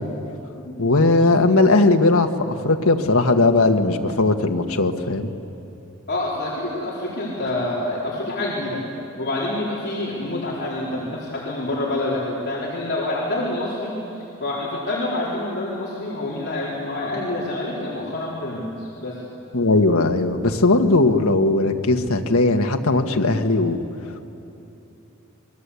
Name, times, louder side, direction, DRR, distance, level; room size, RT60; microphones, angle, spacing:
voice 1, 0.8-5.3 19.5-23.8, left 2 dB, 75° left, 4 dB, 1.5 m, -18 dB
voice 2, 6.1-8.8 9.2-14.0 14.4-19.2, left 1 dB, 50° left, -6 dB, 4.2 m, -27 dB
28.0 x 23.0 x 8.4 m, 3.0 s
head